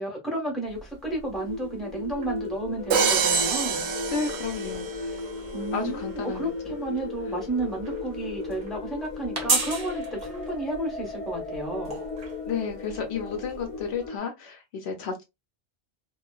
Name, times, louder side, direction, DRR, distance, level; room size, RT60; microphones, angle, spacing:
voice 1, 0.0-3.9 5.5-12.0, right 2 dB, ahead, 1.1 m, -32 dB
sound 1, 0.6-14.1, right 3 dB, 45° right, 0.8 m, -37 dB
sound 2, 1.1-14.2, left 3 dB, 45° left, 0.4 m, -36 dB
Crash cymbal, 2.9-5.1, right 5 dB, 90° right, 0.9 m, -26 dB
voice 2, 4.1-5.2 5.7-6.8 12.5-15.2, left 5 dB, 75° left, 0.9 m, -32 dB
2.9 x 2.3 x 2.3 m
omnidirectional pair, 1.1 m